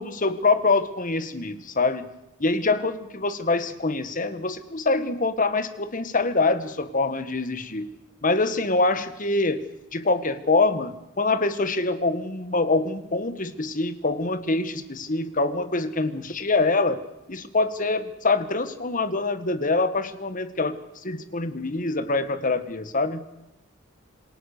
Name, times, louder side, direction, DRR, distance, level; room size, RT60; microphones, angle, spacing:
voice 1, 0.0-2.1 2.4-7.9 8.2-9.6 9.9-17.0 17.3-20.8 21.0-23.2, left 3 dB, 40° left, 11 dB, 1.6 m, -25 dB
27.5 x 18.0 x 6.8 m, 0.88 s
head